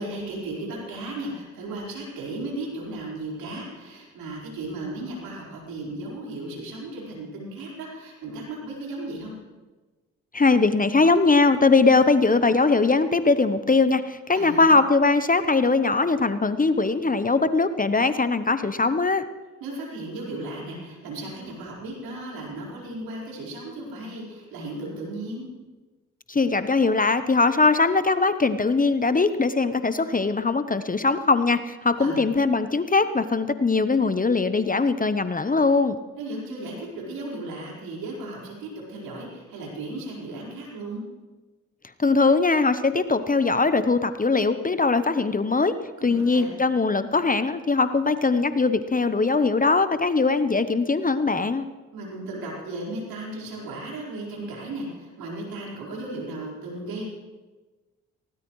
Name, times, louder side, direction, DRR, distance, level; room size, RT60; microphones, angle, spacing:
voice 1, 0.0-9.3 14.3-14.8 19.6-25.5 32.0-32.2 36.2-41.0 46.0-46.6 51.9-57.1, right 2 dB, 75° right, -4 dB, 4.7 m, -35 dB
voice 2, 10.3-19.3 26.3-36.0 42.0-45.7 46.0-51.7, left 3 dB, 25° left, 12 dB, 0.9 m, -21 dB
19.0 x 17.0 x 3.2 m, 1.3 s
hypercardioid pair, 45°, 35 cm